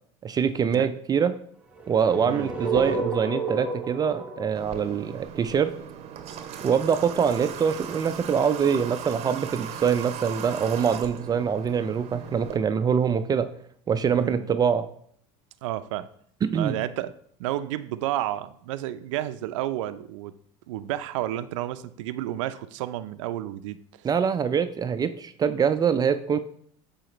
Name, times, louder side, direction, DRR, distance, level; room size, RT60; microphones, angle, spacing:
voice 1, 0.2-1.4 1.9-5.7 6.6-13.5 13.9-14.9 16.4-16.8 24.0-26.4, right 7 dB, 25° right, 10 dB, 0.4 m, -24 dB
sound 1, 1.8-5.9, right 3 dB, 10° right, 0.9 m, -32 dB
Water / Water tap faucet, 4.6-12.6, right 9 dB, 45° right, 0.7 m, -38 dB
voice 2, 14.1-14.5 15.6-16.1 16.5-17.1 17.4-20.3 20.7-23.8, right 13 dB, 90° right, 13 dB, 0.4 m, -31 dB
7.6 x 4.1 x 3.0 m, 0.62 s
supercardioid pair, 110°, 15 cm